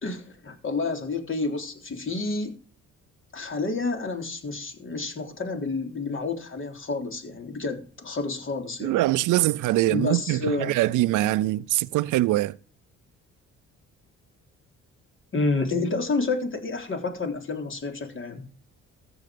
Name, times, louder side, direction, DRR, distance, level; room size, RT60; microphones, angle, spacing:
voice 1, 0.0-2.5 3.3-9.0 9.9-10.8 15.3-18.5, left 3 dB, 40° left, 3.4 m, -29 dB
voice 2, 8.8-12.6, right 16 dB, 85° right, 0.6 m, -23 dB
14.0 x 7.0 x 5.2 m
cardioid pair, 90°, 30 cm